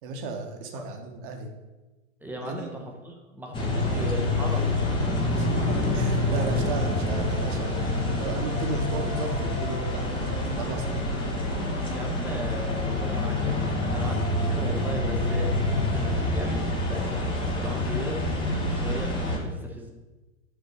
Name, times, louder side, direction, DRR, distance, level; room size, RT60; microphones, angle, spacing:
voice 1, 0.0-1.5 2.4-2.7 3.7-4.2 5.3-11.1 14.3-14.4, right 4 dB, 40° right, 4 dB, 1.5 m, -36 dB
voice 2, 2.2-5.5 6.3-6.4 11.9-18.4 18.7-19.9, right 1 dB, 5° right, 0 dB, 1.0 m, -38 dB
sound 1, 3.5-19.4, left 1 dB, 10° left, 1.3 m, -27 dB
8.3 x 4.4 x 6.8 m, 1.1 s
figure-of-eight pair, 100°, 40 cm